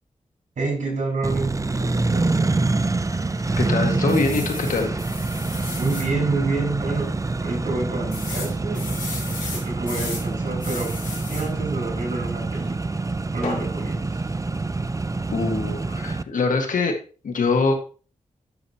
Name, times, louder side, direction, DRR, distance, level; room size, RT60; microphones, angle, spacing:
voice 1, 0.6-2.4 5.8-11.0 11.3-13.0 13.3-14.2, right 3 dB, 75° right, -1 dB, 5.6 m, -28 dB
Accelerating revving vroom, 1.2-16.2, right 3 dB, 25° right, 0.5 m, -26 dB
voice 2, 3.6-5.1 15.3-17.0 17.2-17.7, left 3 dB, 90° left, 4 dB, 1.8 m, -23 dB
sound 1, 4.1-6.1 6.6-6.7 7.0-7.1 8.1-10.3 10.6-11.5 13.4-13.7, left 4 dB, 75° left, 3.1 m, -34 dB
11.5 x 6.9 x 3.0 m, 0.37 s
cardioid pair, 65°, 13 cm